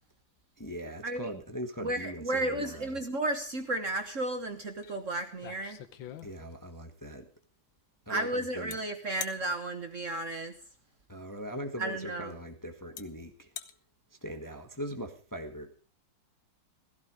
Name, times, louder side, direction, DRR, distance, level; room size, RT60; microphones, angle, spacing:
voice 1, 0.6-3.0 6.2-7.3 8.1-8.7 11.1-13.5 14.2-15.8, equal, 10° left, 5 dB, 1.3 m, -40 dB
voice 2, 1.8-5.8 8.1-10.5 11.8-12.4, right 2 dB, 40° right, 7 dB, 1.4 m, -33 dB
sound 1, 4.8-4.9 5.3-6.7 8.7-8.8 9.2-9.4 11.3-11.4 12.3-12.4 13.0-13.1 13.4-13.7, left 10 dB, 70° left, 1.7 m, -42 dB
16.5 x 14.5 x 4.9 m, 0.37 s
omnidirectional pair, 2.3 m